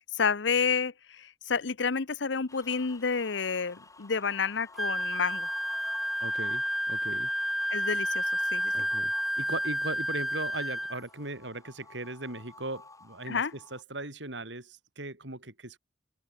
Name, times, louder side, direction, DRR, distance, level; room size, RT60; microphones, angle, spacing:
voice 1, 0.1-5.5 7.7-8.3 8.5-8.7 13.3-13.5, left 5 dB, 75° left, 0.9 m, -29 dB
sound 1, 2.5-13.8, left 3 dB, 20° left, 4.0 m, -53 dB
Wind instrument woodwind instrument, 4.8-11.0, equal, ahead, 1.8 m, -30 dB
voice 2, 6.2-7.3 8.7-15.8, right 2 dB, 75° right, 5.4 m, -38 dB
open air
head